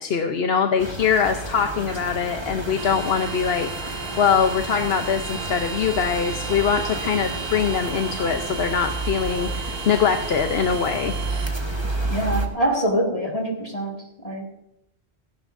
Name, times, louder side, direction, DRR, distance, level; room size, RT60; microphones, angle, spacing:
voice 1, 0.0-11.2, left 7 dB, 65° left, 5 dB, 1.0 m, -23 dB
sound 1, 0.8-12.5, right 2 dB, 25° right, 1.4 m, -31 dB
sound 2, 2.8-11.5, right 5 dB, 60° right, 1.0 m, -35 dB
voice 2, 12.1-14.0 14.2-14.5, right 1 dB, 35° left, -1 dB, 2.2 m, -24 dB
16.5 x 16.0 x 2.6 m, 0.82 s
omnidirectional pair, 1.1 m